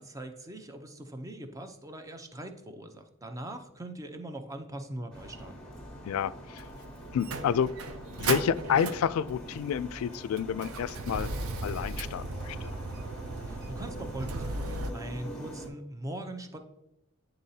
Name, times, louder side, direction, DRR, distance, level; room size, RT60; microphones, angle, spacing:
voice 1, 0.0-5.7 13.5-16.6, right 1 dB, 15° right, 6 dB, 0.5 m, -41 dB
sound 1, 5.1-15.7, equal, 5° left, 1.2 m, -44 dB
voice 2, 6.1-6.6 7.1-7.7 8.1-11.3 11.6-12.7, left 8 dB, 80° left, 16 dB, 0.3 m, -29 dB
Motor vehicle (road), 6.6-14.9, right 3 dB, 85° right, 0.6 m, -37 dB
9.9 x 3.9 x 2.7 m, 0.89 s
head